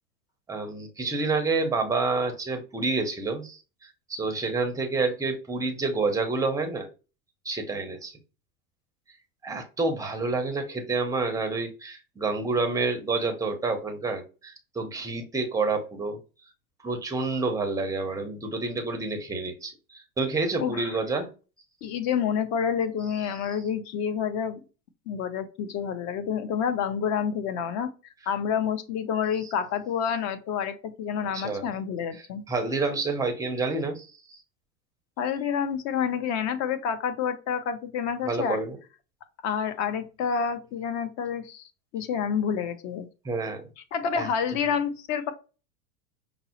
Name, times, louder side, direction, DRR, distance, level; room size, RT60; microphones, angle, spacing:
voice 1, 0.5-3.6 4.1-6.9 7.4-8.1 9.4-16.2 16.8-21.3 31.3-31.6 32.5-34.1 38.2-38.8 43.2-43.7 44.2-44.3, right 3 dB, 10° right, 0.5 m, -28 dB
voice 2, 20.6-21.0 21.8-24.6 25.1-27.9 28.3-32.4 35.2-38.6 39.4-41.6 41.9-43.1 43.9-45.3, left 7 dB, 40° left, 0.6 m, -28 dB
5.2 x 2.0 x 2.9 m
hypercardioid pair, 100°, 46 cm